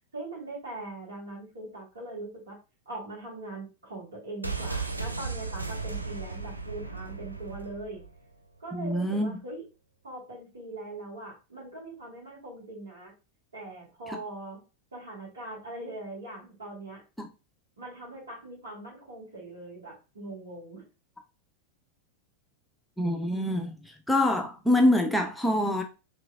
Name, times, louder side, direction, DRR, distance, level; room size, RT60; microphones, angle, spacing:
voice 1, 0.1-2.6 2.9-8.0 8.6-9.6 10.0-13.1 13.5-14.6 14.9-17.0 17.8-20.8, right 2 dB, 70° right, 1.7 m, -41 dB
sound 1, 4.4-8.2 8.5-8.6, right 4 dB, 85° right, 0.3 m, -35 dB
voice 2, 8.7-9.4 14.1-14.2 17.2-17.3 23.0-25.8, left 1 dB, 5° left, 0.4 m, -25 dB
3.3 x 3.1 x 2.3 m
figure-of-eight pair, 90°, 0 cm